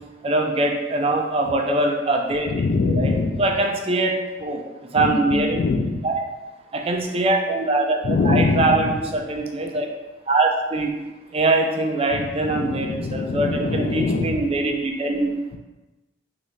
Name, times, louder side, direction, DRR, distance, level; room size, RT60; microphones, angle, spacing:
voice 1, 0.2-2.5 2.9-3.1 3.4-4.1 4.4-4.6 4.9-5.6 6.0-6.1 6.7-8.0 8.2-9.9 10.3-10.9 11.3-15.3, right 2 dB, 30° right, 2 dB, 0.4 m, -22 dB
voice 2, 2.5-3.5 5.0-6.0 8.0-8.9 12.1-14.4, left 3 dB, 50° left, 5 dB, 0.3 m, -23 dB
3.9 x 3.2 x 3.2 m, 1.1 s
head